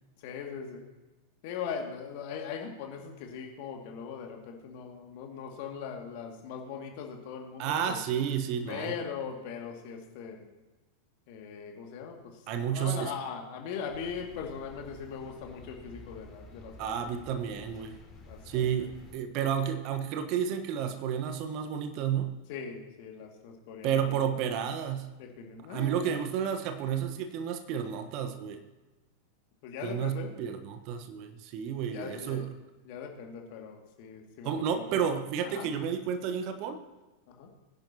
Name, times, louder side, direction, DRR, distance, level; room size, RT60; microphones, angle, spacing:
voice 1, 0.2-0.9 1.4-8.0 8.7-10.5 11.3-16.8 17.1-17.2 18.3-18.9 22.5-24.2 25.2-26.4 29.6-30.3 31.9-32.5 32.8-35.0 35.4-35.7 37.3-37.5, left 6 dB, 45° left, 2 dB, 2.3 m, -40 dB
voice 2, 7.6-8.9 12.5-13.1 16.8-18.0 18.4-22.3 23.8-25.1 25.7-28.6 29.8-32.5 34.4-36.8, right 8 dB, 40° right, 8 dB, 1.2 m, -31 dB
sound 1, 13.9-19.1, left 2 dB, 20° left, 4.6 m, -51 dB
20.5 x 10.5 x 2.9 m, 1.1 s
figure-of-eight pair, 90°, 0 cm